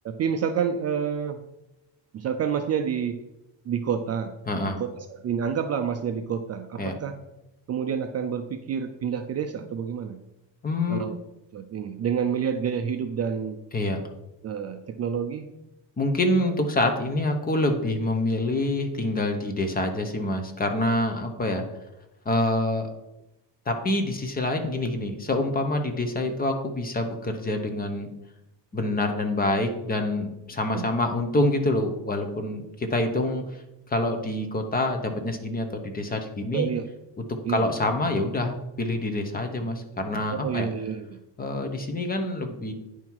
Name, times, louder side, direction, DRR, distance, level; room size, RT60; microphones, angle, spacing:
voice 1, 0.0-1.4 2.1-3.2 3.7-4.3 4.6-7.1 7.7-10.2 10.9-11.1 11.5-13.6 14.4-15.5 30.7-30.9 36.5-36.9 37.5-37.6 40.3-41.2, right 7 dB, 35° right, 7 dB, 0.4 m, -28 dB
voice 2, 4.5-4.8 6.8-6.9 10.6-11.1 13.7-14.0 16.0-21.6 22.2-22.9 23.7-28.1 28.7-33.6 33.9-36.7 37.2-40.7 41.4-42.7, left 2 dB, 20° left, 5 dB, 0.9 m, -26 dB
9.7 x 5.6 x 4.6 m, 0.92 s
cardioid pair, 165°, 44 cm